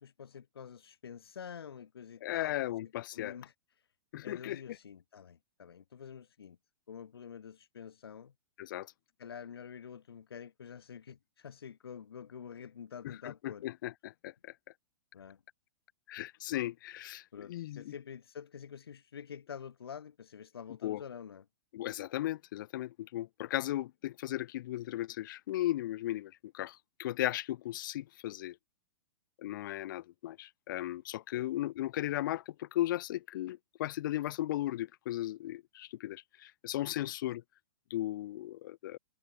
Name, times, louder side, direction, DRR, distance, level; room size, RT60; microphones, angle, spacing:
voice 1, 0.0-3.5 4.2-6.6 6.9-8.3 9.2-13.7 15.1-15.4 17.3-21.5 31.3-31.5 37.0-37.2, left 7 dB, 70° left, 1.9 m, -47 dB
voice 2, 2.2-3.3 4.1-4.6 8.6-8.9 13.0-14.3 16.1-17.9 20.8-21.0 21.7-28.6 29.4-37.4 37.9-39.0, left 14 dB, 55° left, 0.6 m, -36 dB
figure-of-eight pair, 110°, 13 cm